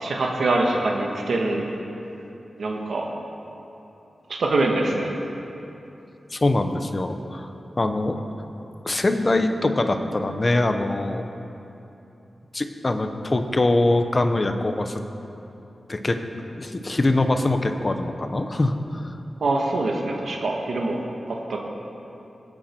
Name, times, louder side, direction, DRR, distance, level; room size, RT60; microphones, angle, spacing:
voice 1, 0.0-1.6 2.6-3.1 4.3-5.1 19.4-21.0 21.5-21.6, right 2 dB, 75° right, 0 dB, 1.4 m, -24 dB
voice 2, 6.3-7.5 7.8-8.2 8.8-11.2 12.5-15.0 15.9-16.2 16.5-19.1, left 2 dB, 30° left, 7 dB, 0.8 m, -23 dB
20.5 x 8.9 x 4.4 m, 2.9 s
wide cardioid pair, 125°, 0 cm